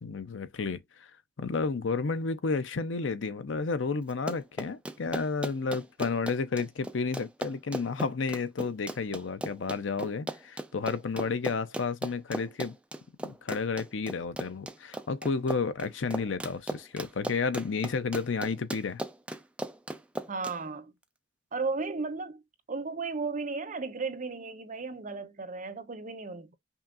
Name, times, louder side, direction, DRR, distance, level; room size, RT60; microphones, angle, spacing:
voice 1, 0.0-1.1 1.4-12.8 13.2-19.0, left 4 dB, 75° left, 0.6 m, -31 dB
Run, 4.1-20.6, right 1 dB, 5° right, 0.4 m, -37 dB
voice 2, 20.3-20.9 21.5-22.4 22.7-26.5, right 4 dB, 40° right, 0.8 m, -35 dB
5.6 x 2.5 x 2.4 m
head